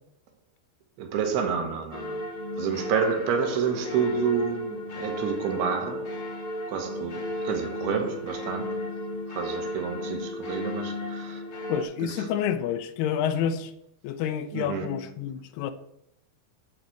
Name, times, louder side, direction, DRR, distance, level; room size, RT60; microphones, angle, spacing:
voice 1, 1.0-6.2 6.7-8.9 9.3-11.4 12.0-12.3 14.5-15.0, right 6 dB, 75° right, 3.1 m, -29 dB
sound 1, 1.9-11.8, left 1 dB, 55° left, 1.6 m, -34 dB
voice 2, 11.7-13.7 14.0-15.7, left 9 dB, 80° left, 2.7 m, -28 dB
11.0 x 4.1 x 7.6 m
omnidirectional pair, 4.6 m